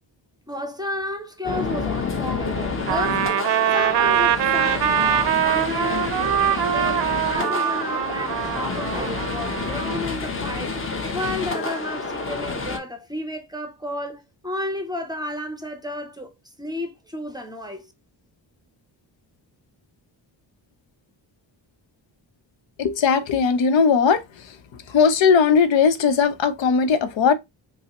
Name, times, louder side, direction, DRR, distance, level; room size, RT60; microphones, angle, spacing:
voice 1, 0.5-3.4 3.7-10.8 11.1-16.3 16.6-17.9, left 1 dB, 10° right, 0.5 m, -32 dB
sound 1, 1.4-12.8, left 4 dB, 30° left, 0.8 m, -29 dB
Trumpet, 2.9-10.0, right 10 dB, 65° right, 0.5 m, -23 dB
voice 2, 22.8-24.6 24.9-27.3, left 6 dB, 85° left, 0.8 m, -18 dB
5.4 x 2.0 x 2.9 m
wide cardioid pair, 145°, 44 cm